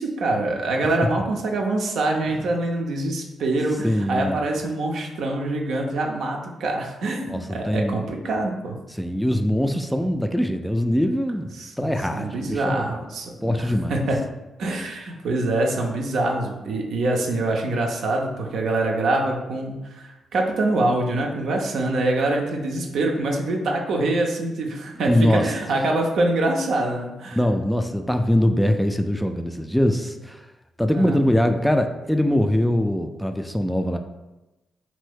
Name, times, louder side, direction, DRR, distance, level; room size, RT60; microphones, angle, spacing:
voice 1, 0.0-8.8 11.6-14.2 14.6-27.4 30.9-31.3, right 2 dB, 70° right, 1 dB, 0.5 m, -25 dB
voice 2, 3.8-4.4 7.3-8.0 8.9-12.9 13.4-14.1 25.1-25.5 27.3-30.5 30.8-34.0, equal, 5° left, 6 dB, 0.3 m, -22 dB
2.7 x 2.6 x 3.5 m, 1.0 s
hypercardioid pair, 40°, 0 cm